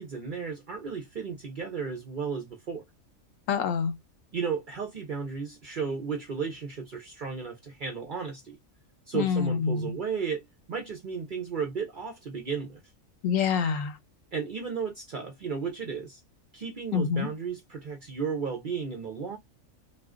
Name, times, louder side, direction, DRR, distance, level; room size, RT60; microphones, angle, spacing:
voice 1, 0.0-2.8 4.3-8.6 9.1-12.8 14.3-16.2 16.5-19.4, right 5 dB, 55° right, 0.6 m, -34 dB
voice 2, 3.5-3.9 9.1-9.9 13.2-14.0 16.9-17.3, left 6 dB, 75° left, 1.1 m, -26 dB
2.4 x 2.3 x 3.5 m
omnidirectional pair, 1.4 m